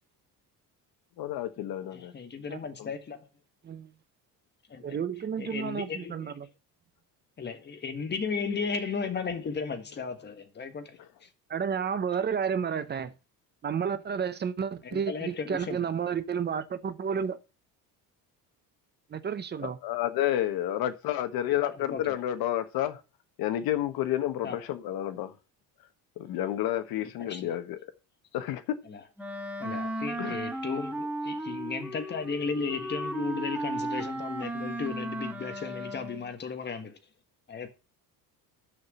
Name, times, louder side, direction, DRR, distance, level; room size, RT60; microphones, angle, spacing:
voice 1, 1.2-2.1 2.8-2.9 19.6-23.0 23.4-25.3 26.2-27.8 28.3-28.8 30.2-30.4, left 12 dB, 70° left, 1.4 m, -30 dB
voice 2, 1.9-3.2 4.7-5.0 5.4-6.3 7.4-10.9 11.2-11.3 14.8-15.8 21.6-22.0 24.4-24.6 27.2-27.5 28.9-29.0 29.6-37.0 37.5-37.7, left 5 dB, 25° left, 1.5 m, -35 dB
voice 3, 4.8-6.5 11.5-13.1 13.6-17.4 19.1-19.8, right 7 dB, 25° right, 0.8 m, -31 dB
Wind instrument woodwind instrument, 29.2-36.3, right 1 dB, 5° right, 1.5 m, -35 dB
6.7 x 5.9 x 6.9 m
cardioid pair, 145°, 38 cm